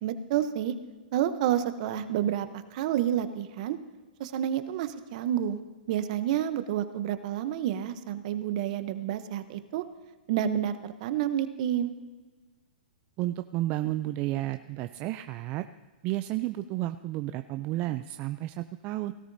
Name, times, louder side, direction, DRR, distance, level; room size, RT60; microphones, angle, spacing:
voice 1, 0.0-0.7 1.1-3.8 4.2-5.6 5.9-9.8 10.3-11.9, right 10 dB, 50° right, 11 dB, 0.8 m, -29 dB
voice 2, 13.2-15.6 16.0-19.1, right 16 dB, 35° right, 10 dB, 0.3 m, -32 dB
17.5 x 12.5 x 2.7 m, 1.3 s
hypercardioid pair, 135°, 5 cm